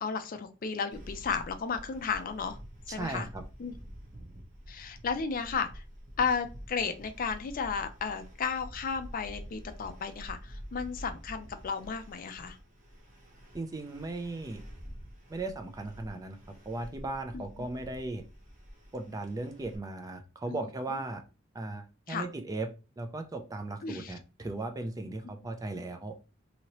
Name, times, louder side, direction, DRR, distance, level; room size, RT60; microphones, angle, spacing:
voice 1, 0.0-2.6 2.9-3.3 3.6-3.7 4.7-5.8 6.2-12.6 17.6-17.7 20.5-20.6 22.1-22.3 23.8-24.1, left 5 dB, 45° left, 9 dB, 0.4 m, -33 dB
sound 1, 0.9-19.8, equal, 40° right, 0.9 m, -48 dB
voice 2, 2.9-3.4 13.5-14.6 15.3-16.4 16.7-18.2 18.9-21.2 21.5-22.7 23.0-26.1, right 2 dB, 15° right, 6 dB, 0.4 m, -37 dB
2.9 x 2.8 x 2.9 m, 0.31 s
head